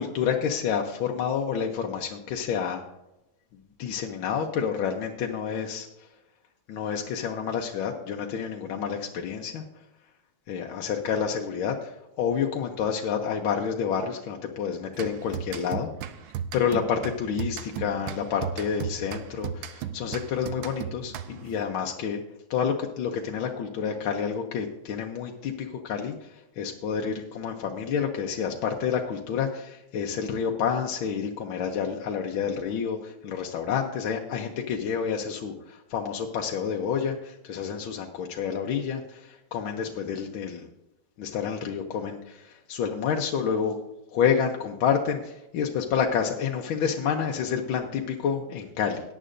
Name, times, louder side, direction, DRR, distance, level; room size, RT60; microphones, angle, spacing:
voice 1, 0.0-2.8 3.8-5.9 6.7-9.6 10.5-11.9 12.2-15.9 16.5-22.2 22.5-26.1 26.6-40.7 41.2-42.4 42.7-43.7 44.1-49.0, left 7 dB, 80° left, 2 dB, 1.6 m, -29 dB
sound 1, 14.9-21.6, right 8 dB, 75° right, 1.4 m, -36 dB
17.5 x 9.9 x 2.6 m, 0.92 s
omnidirectional pair, 2.2 m